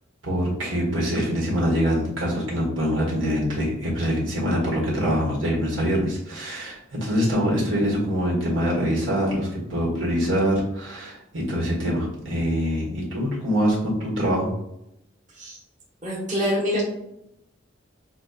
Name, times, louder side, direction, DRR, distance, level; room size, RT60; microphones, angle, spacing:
voice 1, 0.2-14.5, equal, 85° right, -4 dB, 1.5 m, -24 dB
voice 2, 16.0-16.8, equal, 40° right, -5 dB, 1.2 m, -25 dB
6.0 x 2.3 x 2.4 m, 0.84 s
head